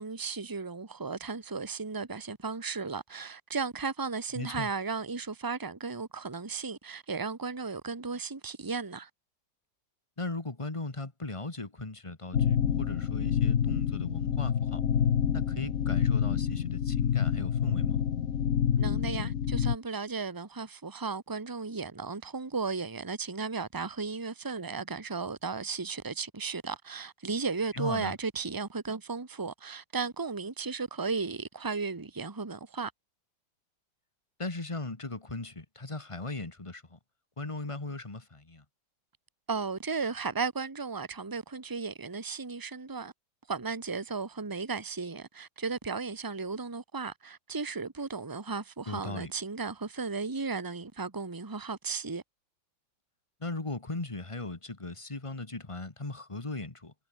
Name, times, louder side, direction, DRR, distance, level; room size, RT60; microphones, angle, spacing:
voice 1, 0.0-9.1 18.8-32.9 39.5-43.1 43.5-52.2, right 4 dB, 10° right, 1.3 m, -35 dB
voice 2, 4.3-4.7 10.2-14.8 15.3-18.0 27.7-28.1 34.4-37.0 37.4-38.6 48.9-49.3 53.4-56.9, left 2 dB, 15° left, 1.8 m, -38 dB
sound 1, 12.3-19.8, left 8 dB, 50° left, 1.1 m, -27 dB
omnidirectional pair, 2.1 m